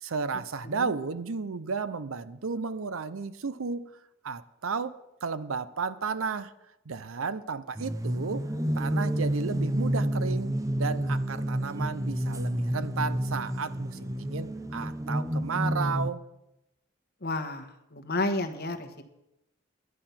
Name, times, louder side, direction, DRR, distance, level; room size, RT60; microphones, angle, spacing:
voice 1, 0.0-3.9 4.2-6.5 6.9-8.5 8.8-16.2, right 5 dB, 75° right, 14 dB, 0.6 m, -33 dB
sound 1, 7.7-16.1, right 1 dB, 15° right, 0.6 m, -30 dB
voice 2, 17.2-18.9, left 2 dB, 50° left, 5 dB, 1.3 m, -31 dB
11.0 x 10.5 x 5.8 m, 0.88 s
head